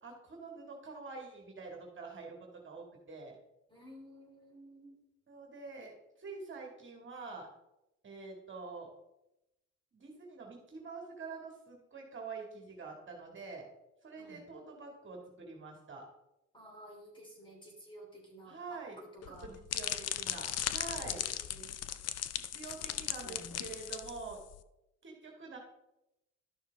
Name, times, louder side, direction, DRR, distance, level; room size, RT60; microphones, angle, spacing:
voice 1, 0.0-3.4 5.3-5.9 6.2-7.5 8.0-8.9 9.9-13.7 14.0-16.1 18.5-19.0 19.4-21.3 22.5-24.4 25.0-25.6, right 4 dB, 40° right, 0 dB, 2.1 m, -46 dB
voice 2, 3.7-4.9 14.2-14.4 16.5-19.5 20.9-21.7 22.9-23.7, right 1 dB, 15° left, -1 dB, 3.3 m, -53 dB
sound 1, 19.2-24.6, left 11 dB, 55° left, 0.6 m, -37 dB
12.5 x 6.5 x 3.5 m, 0.92 s
cardioid pair, 90°, 30 cm